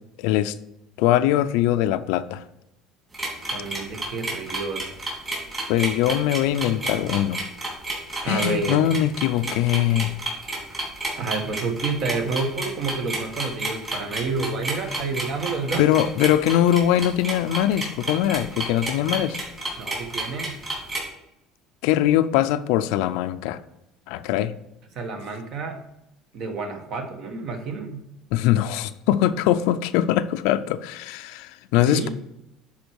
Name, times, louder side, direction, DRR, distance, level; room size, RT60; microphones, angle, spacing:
voice 1, 0.2-0.5 1.0-2.4 5.7-7.4 8.2-10.1 15.8-19.4 21.8-23.6 24.1-24.5 28.3-32.1, left 12 dB, 80° left, 12 dB, 0.5 m, -22 dB
sound 1, 3.1-21.0, right 2 dB, 20° right, 3.3 m, -30 dB
voice 2, 3.5-4.9 8.2-8.9 11.2-15.8 19.8-20.6 24.9-25.8 26.3-28.0 31.9-32.1, right 4 dB, 45° right, 5 dB, 1.4 m, -29 dB
10.5 x 4.4 x 4.7 m, 0.87 s
cardioid pair, 155°, 0 cm